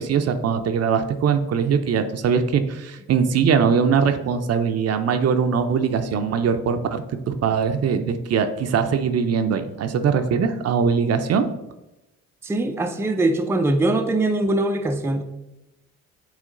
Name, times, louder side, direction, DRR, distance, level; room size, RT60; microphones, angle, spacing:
voice 1, 0.0-11.5, right 6 dB, 55° right, 8 dB, 0.6 m, -21 dB
voice 2, 12.4-15.2, right 2 dB, 10° right, 5 dB, 0.5 m, -22 dB
8.3 x 3.1 x 3.8 m, 0.95 s
cardioid pair, 90°, 30 cm